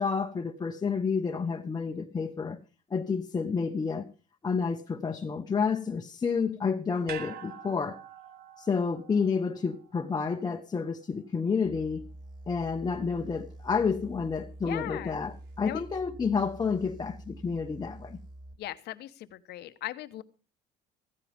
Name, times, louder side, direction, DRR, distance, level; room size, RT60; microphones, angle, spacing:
voice 1, 0.0-2.6 2.9-4.1 4.4-8.0 8.6-12.0 12.5-18.2, left 5 dB, 25° left, 1.1 m, -30 dB
sound 1, 7.1-11.4 11.7-11.8, right 8 dB, 65° right, 1.7 m, -46 dB
sound 2, 11.6-18.5, right 1 dB, 25° right, 5.4 m, -47 dB
voice 2, 14.6-15.2 15.6-15.8 18.6-20.2, left 14 dB, 75° left, 1.2 m, -38 dB
15.5 x 15.0 x 3.6 m
cardioid pair, 110°, 17 cm